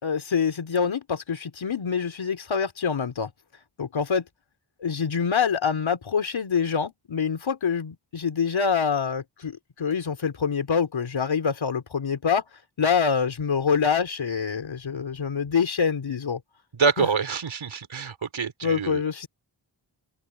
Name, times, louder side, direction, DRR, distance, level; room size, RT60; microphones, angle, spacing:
voice 1, 0.0-3.3 3.8-4.3 4.8-12.5 12.8-16.4 17.0-17.1 18.6-19.3, left 6 dB, 85° left, 3.9 m, -25 dB
voice 2, 16.7-19.0, right 5 dB, 85° right, 5.0 m, -26 dB
open air
cardioid pair, 55°, 46 cm